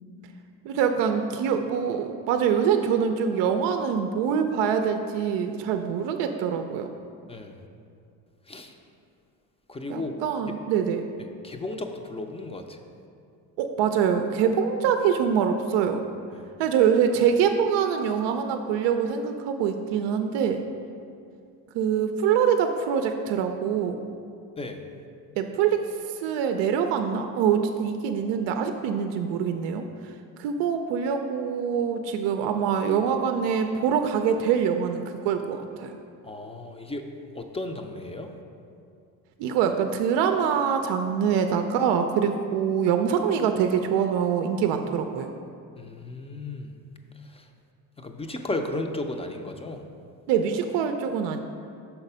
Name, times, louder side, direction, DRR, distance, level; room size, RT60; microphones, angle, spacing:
voice 1, 0.6-6.9 9.9-11.1 13.6-16.0 16.6-20.6 21.7-24.0 25.4-35.9 39.4-45.3 50.3-51.4, right 7 dB, 80° right, 6 dB, 0.5 m, -24 dB
voice 2, 7.3-7.6 8.5-8.7 9.7-10.2 11.4-12.8 16.3-16.5 24.6-24.8 36.2-37.0 37.3-38.3 45.8-46.8 47.2-47.5 48.0-49.9, left 2 dB, 15° left, 5 dB, 0.4 m, -34 dB
5.8 x 4.0 x 5.5 m, 2.4 s
supercardioid pair, 85°, 42 cm